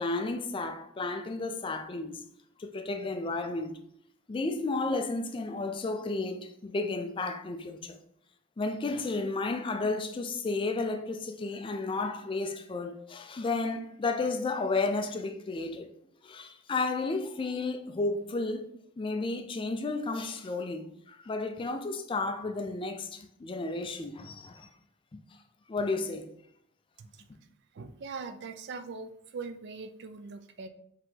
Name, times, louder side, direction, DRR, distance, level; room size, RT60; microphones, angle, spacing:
voice 1, 0.0-2.2 2.6-3.8 4.3-8.0 8.6-15.9 16.2-24.7 25.1-25.2 25.7-26.3, left 3 dB, 25° left, 0.3 m, -32 dB
voice 2, 27.7-30.7, right 4 dB, 55° right, 0.4 m, -41 dB
4.8 x 2.8 x 3.7 m
head